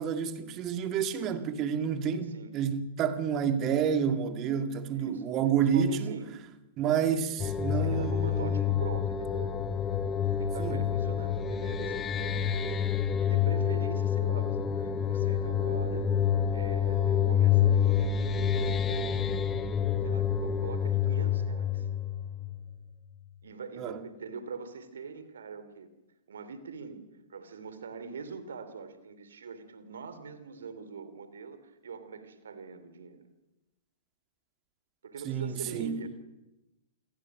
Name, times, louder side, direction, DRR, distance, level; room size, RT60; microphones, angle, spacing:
voice 1, 0.0-6.2 6.8-8.7 10.6-10.8 23.8-24.0 35.3-36.0, right 7 dB, 30° right, 2.2 m, -29 dB
voice 2, 4.9-5.2 5.7-6.3 7.1-7.2 7.7-9.5 10.4-16.1 16.5-19.6 20.0-21.9 23.4-25.9 26.3-33.2 35.0-36.2, right 5 dB, 60° right, 3.3 m, -43 dB
sound 1, 7.4-22.9, left 8 dB, 20° left, 1.4 m, -28 dB
28.0 x 22.0 x 6.3 m
figure-of-eight pair, 105°, 0 cm